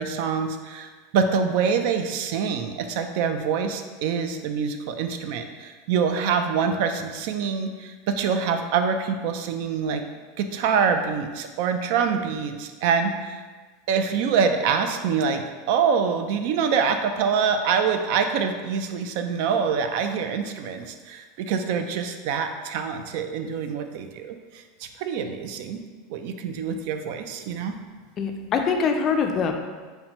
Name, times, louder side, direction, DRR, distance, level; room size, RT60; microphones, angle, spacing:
voice 1, 0.0-10.0 10.4-13.4 13.9-25.8 26.1-27.8, right 6 dB, 60° right, 7 dB, 0.3 m, -25 dB
voice 2, 28.2-29.5, left 5 dB, 30° left, 4 dB, 0.4 m, -23 dB
5.5 x 2.1 x 2.9 m, 1.4 s
supercardioid pair, 140°, 0 cm